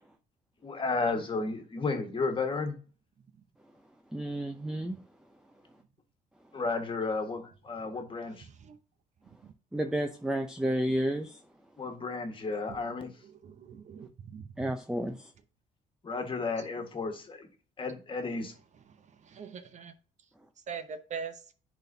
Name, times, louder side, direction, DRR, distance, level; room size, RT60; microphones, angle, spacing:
voice 1, 0.6-2.8 6.5-8.5 11.8-13.1 16.0-17.5 17.8-18.5, left 3 dB, 30° left, 1.7 m, -33 dB
voice 2, 4.1-5.0 9.7-11.4 14.6-15.3, right 1 dB, 5° right, 0.6 m, -31 dB
voice 3, 13.4-14.4 19.3-19.9 20.7-21.3, right 6 dB, 45° right, 0.8 m, -41 dB
10.5 x 4.2 x 2.8 m
cardioid pair, 110°, 17 cm